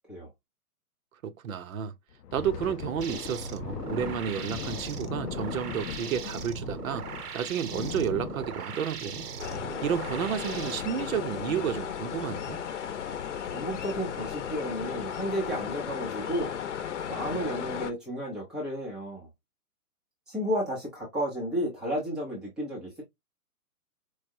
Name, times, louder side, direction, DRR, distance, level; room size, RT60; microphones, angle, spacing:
voice 1, 1.2-1.9 2.3-7.0 7.3-9.3 9.8-12.6, right 9 dB, 60° right, 0.7 m, -31 dB
Thunder, 2.1-11.2 11.5-11.7 12.1-12.4 13.0-13.5, left 10 dB, 85° left, 0.6 m, -40 dB
sound 1, 3.0-10.8, right 6 dB, 80° right, 1.0 m, -39 dB
sound 2, 9.4-17.9, left 8 dB, 50° left, 0.8 m, -35 dB
voice 2, 13.5-16.6 17.1-19.3 20.3-23.0, equal, ahead, 0.5 m, -32 dB
4.7 x 2.1 x 2.6 m
hypercardioid pair, 150°, 46 cm